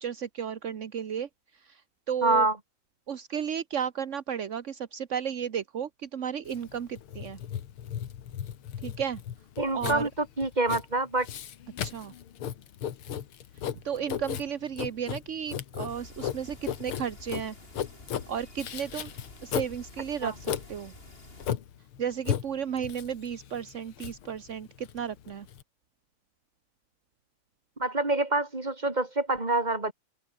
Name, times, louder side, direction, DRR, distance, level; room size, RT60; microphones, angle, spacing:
voice 1, 0.0-1.8 2.1-2.5 3.1-7.4 8.8-9.2 9.7-10.1 11.8-12.1 13.8-17.5 18.3-19.1 19.4-20.9 22.0-25.5, right 8 dB, 45° right, 1.0 m, -33 dB
voice 2, 2.2-2.5 9.6-11.3 20.2-20.3 27.8-29.9, right 2 dB, 20° right, 3.3 m, -26 dB
Writing, 6.5-25.6, left 9 dB, 75° left, 2.3 m, -36 dB
sound 1, 15.9-21.5, left 2 dB, 25° left, 4.3 m, -50 dB
open air
omnidirectional pair, 2.4 m